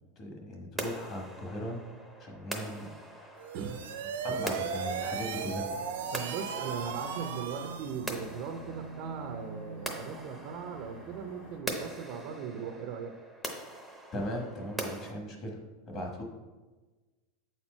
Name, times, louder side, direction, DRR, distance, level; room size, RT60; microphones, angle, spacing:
voice 1, 0.2-1.8 2.2-3.4 4.2-5.7 14.1-15.6 15.9-16.2, equal, 30° left, 1 dB, 1.1 m, -38 dB
sound 1, 0.8-15.1, right 1 dB, ahead, 0.7 m, -43 dB
sound 2, 3.4-8.2, right 6 dB, 80° right, 0.8 m, -36 dB
sound 3, 4.2-11.6, right 2 dB, 65° left, 1.6 m, -47 dB
voice 2, 6.1-13.1 15.9-16.0, right 7 dB, 40° right, 4 dB, 0.5 m, -39 dB
8.1 x 4.4 x 4.3 m, 1.3 s
supercardioid pair, 175°, 0 cm